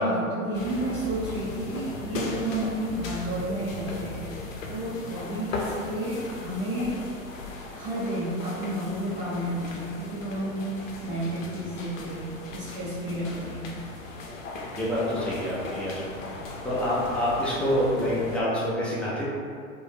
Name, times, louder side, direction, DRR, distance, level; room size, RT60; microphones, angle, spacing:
voice 1, 0.0-6.9 7.7-13.7, right 1 dB, 40° right, -9 dB, 0.7 m, -31 dB
Japan Tokyo Station Footsteps Train, 0.5-18.4, left 3 dB, 70° left, 0.6 m, -38 dB
voice 2, 14.8-19.2, equal, 5° left, -9 dB, 0.4 m, -27 dB
3.3 x 2.2 x 2.6 m, 2.3 s
figure-of-eight pair, 95°, 40 cm